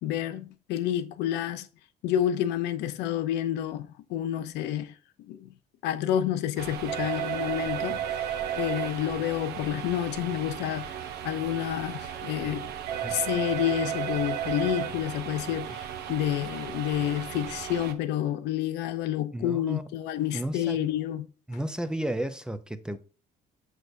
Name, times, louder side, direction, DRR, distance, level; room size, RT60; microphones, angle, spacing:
voice 1, 0.0-1.7 2.0-4.9 5.3-5.5 5.8-10.9 11.2-12.7 13.1-21.2, left 11 dB, 85° left, 0.6 m, -29 dB
sound 1, 6.6-17.9, right 9 dB, 75° right, 0.9 m, -34 dB
voice 2, 19.3-19.9 20.3-20.9 21.5-23.0, right 1 dB, 5° right, 0.5 m, -33 dB
6.4 x 6.3 x 2.6 m
cardioid pair, 110°, 17 cm